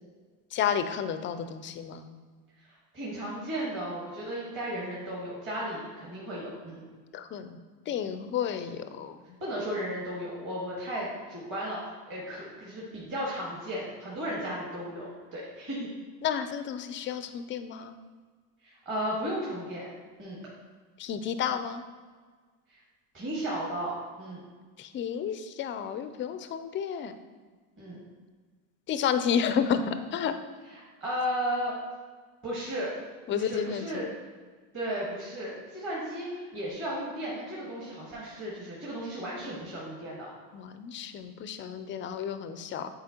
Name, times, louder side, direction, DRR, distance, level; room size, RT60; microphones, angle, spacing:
voice 1, 0.5-2.1 7.1-7.6 7.9-9.2 16.2-17.9 21.0-21.8 24.8-27.1 28.9-30.4 33.3-34.0 40.5-42.9, left 8 dB, 30° left, 10 dB, 0.3 m, -31 dB
voice 2, 2.6-6.8 9.4-11.8 12.1-15.9 18.6-19.9 20.2-20.4 22.7-22.8 23.1-24.4 27.8-28.0 30.7-31.7 32.4-32.9 33.3-34.0 34.7-40.3, equal, 30° right, -6 dB, 1.7 m, -35 dB
7.6 x 4.4 x 2.8 m, 1.5 s
supercardioid pair, 105°, 43 cm